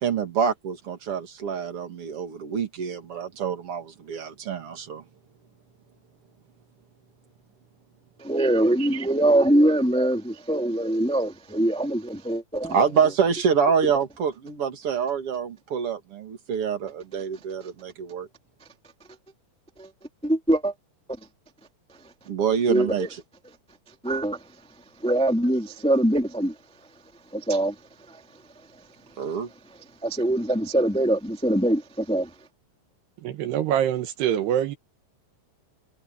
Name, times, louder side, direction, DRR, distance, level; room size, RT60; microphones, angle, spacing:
voice 1, 0.0-5.0 12.7-18.3 22.3-23.1 29.2-29.5, right 7 dB, 40° right, 2.4 m, -26 dB
voice 2, 8.2-12.8 19.8-19.9 20.2-20.7 22.7-23.1 24.0-24.4 25.0-26.5 27.3-27.7 28.1-28.2 30.0-32.3, right 1 dB, 10° left, 0.4 m, -23 dB
voice 3, 33.2-34.8, right 10 dB, 70° right, 3.1 m, -24 dB
omnidirectional pair, 5.3 m